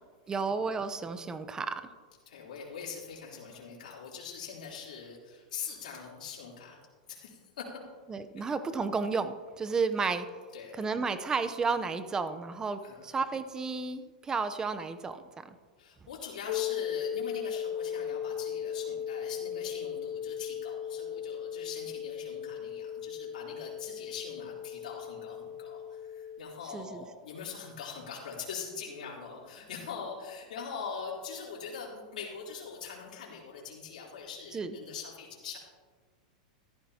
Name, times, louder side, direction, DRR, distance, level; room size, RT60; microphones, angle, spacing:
voice 1, 0.3-1.8 8.1-10.3 10.7-15.6 26.7-27.0 34.5-34.7, right 4 dB, 15° right, 10 dB, 0.7 m, -32 dB
voice 2, 2.2-6.8 7.1-7.7 8.4-8.5 10.5-10.8 12.8-13.0 15.8-35.6, left 6 dB, 85° left, -4 dB, 3.4 m, -42 dB
sound 1, 16.5-26.4, left 9 dB, 55° left, 0.7 m, -37 dB
14.5 x 13.0 x 2.8 m, 1.5 s
supercardioid pair, 135°, 4 cm